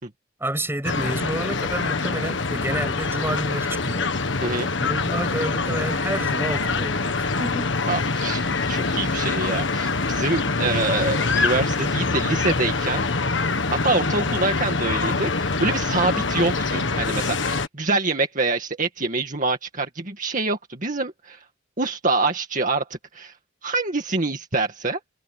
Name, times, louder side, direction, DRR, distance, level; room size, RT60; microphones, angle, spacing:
voice 1, 0.4-4.1 4.8-7.7, right 1 dB, 10° right, 7.6 m, -29 dB
sound 1, 0.8-17.7, left 3 dB, 70° left, 1.6 m, -24 dB
voice 2, 7.9-13.0 13.7-21.4 21.8-23.3 23.6-25.0, right 3 dB, 40° right, 2.1 m, -25 dB
head